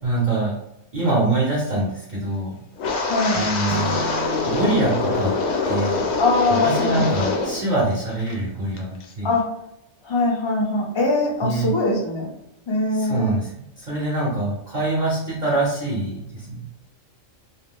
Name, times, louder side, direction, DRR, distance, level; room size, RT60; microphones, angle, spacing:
voice 1, 0.0-0.5 0.9-2.6 3.3-4.0 4.4-5.3 5.7-6.0 6.5-9.3 11.4-11.7 12.9-13.5 13.8-16.6, right 2 dB, 40° right, -6 dB, 0.8 m, -24 dB
Wind, 2.8-7.6 7.9-8.3 8.8-9.1, left 3 dB, 65° left, 0.8 m, -24 dB
voice 2, 3.0-3.5 6.2-7.1 9.2-9.5 10.0-12.3 12.7-13.3, left 2 dB, 30° left, -2 dB, 0.5 m, -22 dB
Acoustic guitar / Strum, 3.7-7.0, right 2 dB, 80° right, 0.3 m, -35 dB
2.4 x 2.2 x 3.4 m, 0.81 s
omnidirectional pair, 1.4 m